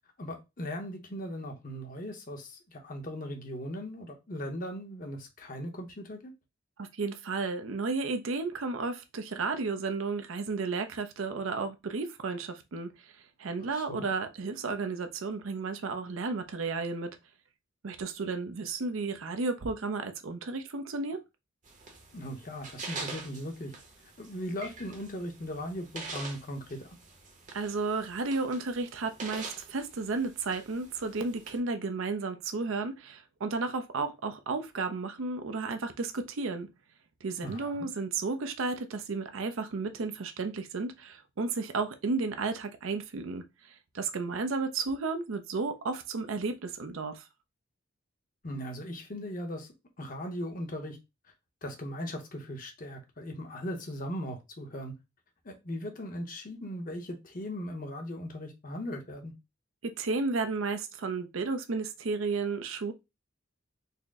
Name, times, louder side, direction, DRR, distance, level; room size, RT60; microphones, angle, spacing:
voice 1, 0.2-6.3 13.6-14.1 22.1-23.7 24.2-26.9 37.4-37.9 48.4-49.7 50.0-51.0 51.6-54.9 55.4-59.3, equal, 45° left, 0.8 m, -38 dB
voice 2, 6.8-12.9 13.4-17.2 17.8-21.2 27.5-36.7 37.2-43.4 43.9-47.2 59.8-62.9, right 4 dB, 85° right, 0.6 m, -33 dB
sound 1, 21.6-31.6, right 4 dB, 40° right, 0.8 m, -45 dB
4.2 x 2.0 x 3.5 m
head